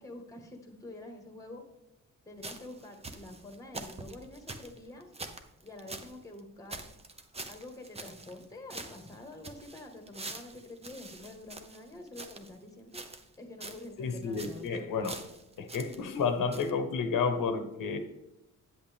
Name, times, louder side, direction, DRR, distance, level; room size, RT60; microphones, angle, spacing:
voice 1, 0.0-1.6 2.2-5.1 5.6-6.8 7.5-13.0 13.4-14.9, left 2 dB, 10° left, 4 dB, 1.4 m, -47 dB
sound 1, 2.4-6.1 6.4-6.5 6.7-8.4 8.7-12.5 12.9-13.3 13.6-13.9 14.2-14.7 15.0-16.2 16.5-16.7, right 2 dB, 20° right, 0.8 m, -45 dB
voice 2, 14.0-15.2 15.6-18.0, left 5 dB, 90° left, 8 dB, 1.1 m, -31 dB
9.1 x 8.1 x 3.5 m, 0.94 s
wide cardioid pair, 150°, 32 cm